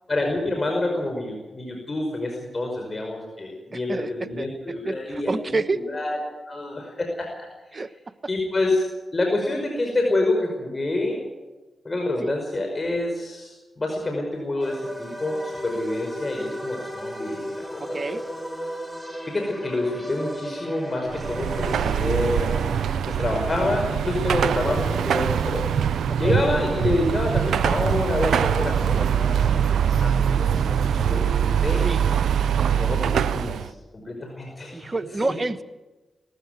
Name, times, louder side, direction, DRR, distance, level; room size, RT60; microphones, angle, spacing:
voice 1, 0.1-6.2 6.5-7.5 7.7-7.8 8.3-8.9 9.1-11.2 11.8-18.2 19.3-22.7 23.1-25.7 26.2-30.5 30.9-31.9 32.7-34.9 35.2-35.3, left 2 dB, 40° left, 2 dB, 5.4 m, -27 dB
voice 2, 3.7-4.5 4.8-5.8 7.7-7.9 12.2-12.3 17.8-18.2 26.2-26.4 31.8-32.0 34.7-35.6, right 3 dB, 40° right, 12 dB, 1.2 m, -28 dB
sound 1, 14.6-23.0, equal, ahead, 5.2 m, -35 dB
Car passing by / Traffic noise roadway noise / Engine, 21.1-33.7, right 8 dB, 80° right, 0.6 m, -23 dB
19.0 x 15.0 x 9.3 m, 1.1 s
supercardioid pair, 40°, 0 cm